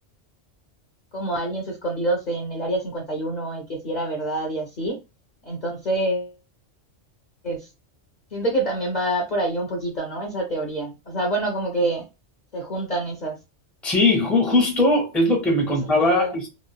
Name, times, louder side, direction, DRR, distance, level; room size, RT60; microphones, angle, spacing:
voice 1, 1.1-5.0 5.5-6.3 7.4-7.7 8.3-12.1 12.5-13.4 15.7-15.8 16.1-16.4, right 1 dB, 45° left, 0.6 m, -26 dB
voice 2, 13.8-16.5, left 2 dB, ahead, 0.5 m, -20 dB
3.1 x 2.0 x 2.2 m
omnidirectional pair, 1.2 m